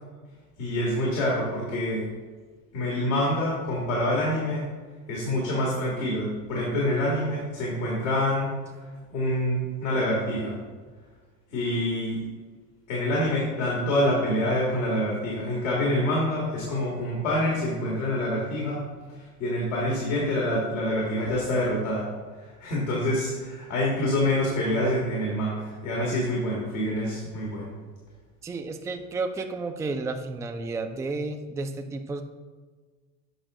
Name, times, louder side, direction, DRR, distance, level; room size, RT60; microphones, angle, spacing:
voice 1, 0.6-2.1 2.7-4.7 5.1-10.5 11.5-12.2 12.9-22.0 22.3-27.7, left 1 dB, 85° left, -4 dB, 2.0 m, -26 dB
voice 2, 28.4-32.2, right 3 dB, 10° right, 6 dB, 0.4 m, -32 dB
8.0 x 5.3 x 3.7 m, 1.4 s
supercardioid pair, 95°, 38 cm